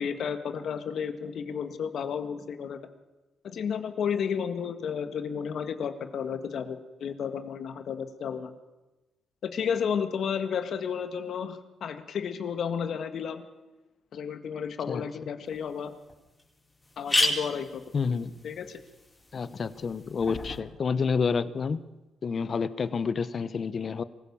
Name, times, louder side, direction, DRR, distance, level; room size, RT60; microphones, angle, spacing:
voice 1, 0.0-2.8 3.4-8.5 9.4-13.5 14.1-15.9 17.0-17.8 18.4-18.8, left 7 dB, 65° left, 8 dB, 1.9 m, -32 dB
sound 1, 15.5-15.6 16.1-16.2 16.4-16.5 16.8-20.6, left 2 dB, 15° left, 4.5 m, -32 dB
voice 2, 17.9-18.3 19.3-21.8 22.2-24.0, left 5 dB, 45° left, 14 dB, 1.0 m, -29 dB
24.0 x 16.0 x 7.1 m, 1.1 s
cardioid pair, 90°, 0 cm